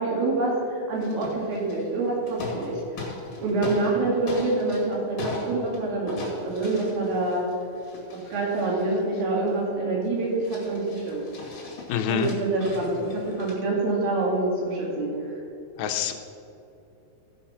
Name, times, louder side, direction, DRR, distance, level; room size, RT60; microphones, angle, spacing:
voice 1, 0.0-3.1 3.4-7.4 8.1-11.2 12.1-15.4, right 2 dB, 80° right, -3 dB, 4.0 m, -26 dB
sound 1, 1.0-2.0 2.3-4.0 4.3-5.8 6.1-9.6 10.0-10.1 10.4-13.5, left 2 dB, 50° left, 2.8 m, -39 dB
voice 2, 11.9-12.3 15.8-16.1, left 10 dB, 90° left, 6 dB, 2.6 m, -26 dB
15.0 x 5.6 x 5.7 m, 2.8 s
omnidirectional pair, 4.1 m